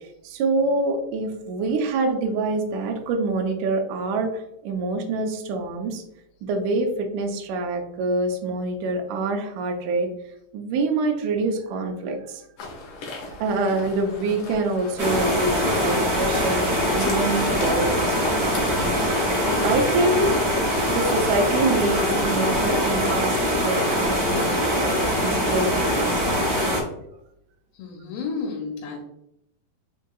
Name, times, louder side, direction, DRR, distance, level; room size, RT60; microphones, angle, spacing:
voice 1, 0.2-6.0 6.4-10.1 10.5-12.4 13.4-18.2 19.6-20.4 20.9-26.6, right 2 dB, 85° right, 3 dB, 1.8 m, -26 dB
sound 1, 12.6-19.7, left 3 dB, 70° left, 2.5 m, -38 dB
sound 2, 15.0-26.8, equal, 45° right, 1.3 m, -23 dB
voice 2, 27.8-29.0, left 4 dB, 90° left, 1 dB, 2.5 m, -31 dB
5.5 x 3.7 x 2.3 m, 0.80 s
omnidirectional pair, 4.2 m